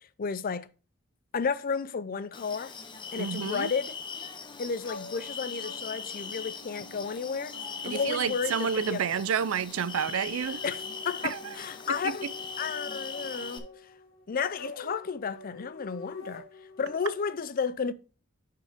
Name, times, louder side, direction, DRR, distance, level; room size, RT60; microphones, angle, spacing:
voice 1, 0.2-0.7 1.3-2.7 3.1-3.9 4.6-7.6 7.8-9.0 10.6-12.3 12.6-13.7 14.3-16.4 16.8-17.9, left 5 dB, 45° left, 0.4 m, -32 dB
sound 1, 2.3-13.6, left 5 dB, 25° left, 0.8 m, -40 dB
voice 2, 3.2-3.7 7.8-10.6 11.2-11.4 11.9-12.3, right 7 dB, 80° right, 0.5 m, -30 dB
sound 2, 4.8-17.1, left 3 dB, 80° left, 1.8 m, -47 dB
10.5 x 4.7 x 3.5 m
head